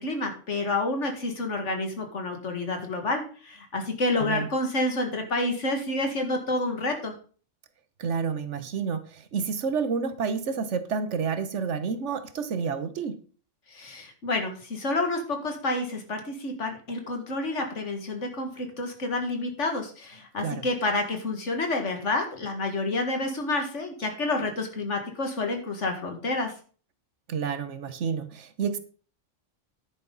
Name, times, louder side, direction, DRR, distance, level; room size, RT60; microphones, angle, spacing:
voice 1, 0.0-7.1 13.7-26.5, left 2 dB, 75° left, 4 dB, 2.2 m, -29 dB
voice 2, 8.0-13.2 20.4-20.7 27.3-28.8, right 6 dB, 70° right, 11 dB, 1.3 m, -29 dB
10.0 x 9.2 x 3.9 m, 0.39 s
omnidirectional pair, 1.3 m